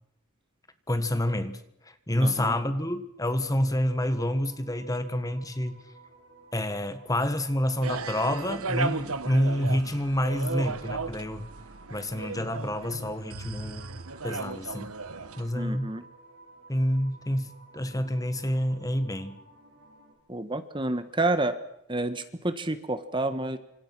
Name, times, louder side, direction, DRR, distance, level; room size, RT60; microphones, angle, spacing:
voice 1, 0.9-1.6 1.9-5.8 6.5-11.5 11.9-13.9 14.2-14.9 15.4-15.9 16.7-19.4, left 1 dB, 15° left, 10 dB, 1.6 m, -28 dB
voice 2, 2.2-2.5 15.5-16.0 20.3-21.5 21.9-23.6, right 2 dB, 20° right, 11 dB, 1.4 m, -29 dB
sound 1, 4.1-20.1, right 3 dB, 55° right, 7.8 m, -55 dB
sound 2, 7.8-15.5, right 3 dB, 75° right, 1.3 m, -35 dB
28.5 x 26.5 x 6.2 m, 0.78 s
head